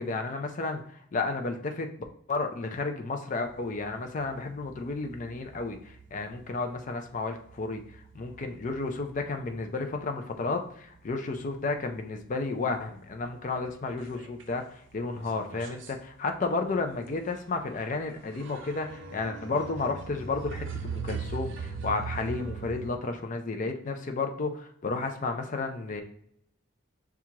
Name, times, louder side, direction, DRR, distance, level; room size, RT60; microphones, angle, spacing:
voice 1, 0.0-1.9 2.3-26.0, left 3 dB, 40° left, 5 dB, 0.4 m, -32 dB
sound 1, 3.5-10.1 10.4-11.6 12.0-12.1 12.4-12.5 12.8-14.6 14.9-23.0, right 5 dB, 60° right, 0.5 m, -41 dB
5.9 x 2.4 x 2.8 m, 0.68 s
head